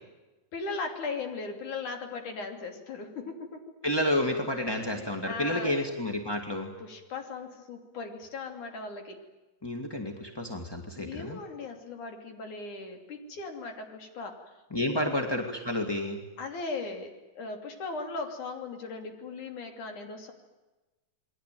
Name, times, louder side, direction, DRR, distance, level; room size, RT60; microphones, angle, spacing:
voice 1, 0.5-3.6 4.9-5.9 6.8-9.2 11.0-14.4 14.8-15.2 16.4-20.3, left 4 dB, 60° left, 4 dB, 4.3 m, -38 dB
voice 2, 3.8-6.7 9.6-11.4 14.7-16.2, left 1 dB, 10° left, 3 dB, 1.1 m, -30 dB
28.5 x 21.0 x 9.3 m, 1.1 s
omnidirectional pair, 4.0 m